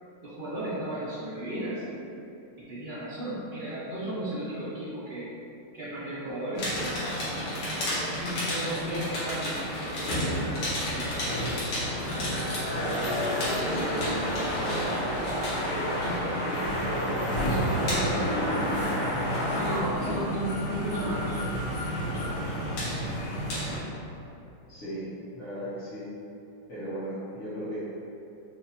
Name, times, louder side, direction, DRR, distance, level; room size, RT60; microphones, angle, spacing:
voice 1, 0.2-2.0 2.7-5.2 5.7-6.9 8.2-11.5 11.9-14.2 15.0-18.3 18.6-21.3 22.0-22.5, right 1 dB, 85° right, -12 dB, 0.4 m, -35 dB
sound 1, 6.6-23.8, equal, 75° left, 1.9 m, -30 dB
voice 2, 24.7-26.1 26.7-27.8, equal, 50° left, -11 dB, 1.1 m, -36 dB
4.8 x 2.5 x 2.8 m, 2.8 s
omnidirectional pair, 2.3 m